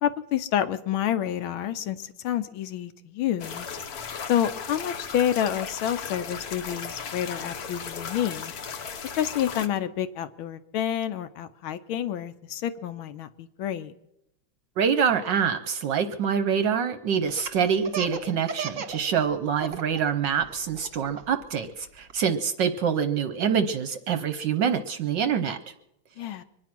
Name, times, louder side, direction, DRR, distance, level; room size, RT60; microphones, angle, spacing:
voice 1, 0.0-3.8 4.3-8.5 9.0-13.9 26.2-26.4, left 10 dB, 75° left, 12 dB, 1.5 m, -29 dB
sound 1, 3.4-9.7, left 6 dB, 55° left, 1.2 m, -36 dB
voice 2, 14.8-25.6, right 7 dB, 65° right, 10 dB, 1.2 m, -25 dB
Laughter, 17.3-19.0 19.3-20.0 20.4-22.1, right 5 dB, 45° right, 1.3 m, -35 dB
24.0 x 9.9 x 6.0 m, 0.84 s
omnidirectional pair, 2.4 m